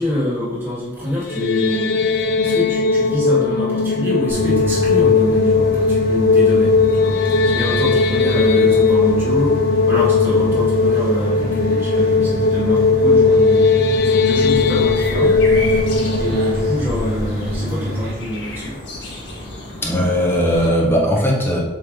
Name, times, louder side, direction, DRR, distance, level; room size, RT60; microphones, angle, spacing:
voice 1, 0.0-2.0 2.4-7.1 7.5-15.4 16.2-18.8, equal, 15° right, -9 dB, 1.9 m, -26 dB
sound 1, 1.1-18.3, left 4 dB, 60° left, 0.4 m, -17 dB
sound 2, 4.3-18.1, right 1 dB, 55° right, 1.3 m, -26 dB
sound 3, 14.3-20.7, left 1 dB, 80° left, 1.5 m, -31 dB
voice 2, 19.8-21.6, equal, 15° left, -1 dB, 1.1 m, -18 dB
7.8 x 3.4 x 3.7 m, 1.1 s
head